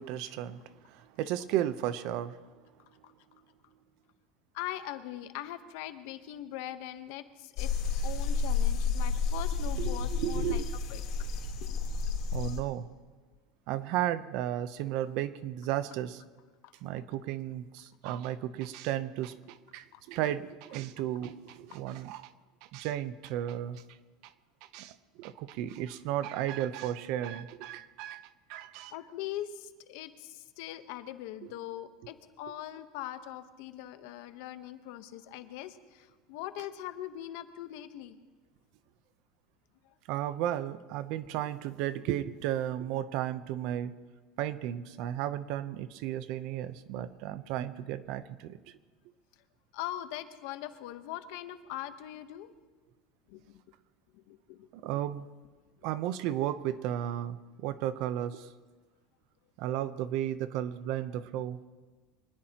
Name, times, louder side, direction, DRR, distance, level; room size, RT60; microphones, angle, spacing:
voice 1, 0.0-2.4 9.8-10.7 12.3-12.9 13.7-16.2 16.8-22.2 22.6-23.8 24.7-28.9 40.1-43.9 44.4-48.6 54.7-55.3 55.8-58.5 59.6-61.6, right 12 dB, 55° right, 13 dB, 0.7 m, -34 dB
voice 2, 4.5-7.7 8.0-10.6 10.9-11.0 11.6-11.8 19.9-20.0 21.7-21.8 28.9-38.2 39.8-39.9 49.7-52.5 53.3-53.6 54.1-54.7, left 13 dB, 65° left, 10 dB, 1.0 m, -41 dB
sound 1, 7.6-12.6, left 5 dB, 50° left, 3.3 m, -30 dB
24.5 x 19.5 x 3.0 m, 1.3 s
cardioid pair, 165°, 0 cm